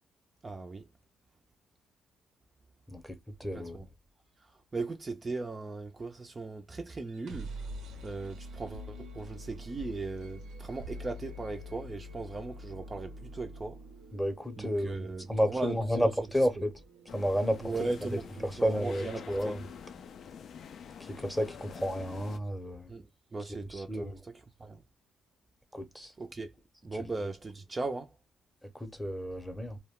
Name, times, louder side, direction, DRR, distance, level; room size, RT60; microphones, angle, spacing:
voice 1, 0.4-0.9 3.5-3.9 4.4-7.5 8.0-13.8 14.6-16.1 17.6-19.6 22.9-24.8 26.2-26.5 26.8-28.1, right 3 dB, 30° right, 0.4 m, -38 dB
voice 2, 2.9-3.8 14.1-16.7 17.1-17.7 18.4-19.6 21.0-22.9 23.7-24.2 25.7-26.1 27.0-27.1 28.6-29.8, equal, 5° left, 0.7 m, -32 dB
sound 1, 7.1-20.8, equal, 80° right, 0.7 m, -47 dB
sound 2, 17.1-22.4, left 7 dB, 60° left, 0.3 m, -47 dB
2.3 x 2.1 x 3.5 m
cardioid pair, 90°, 0 cm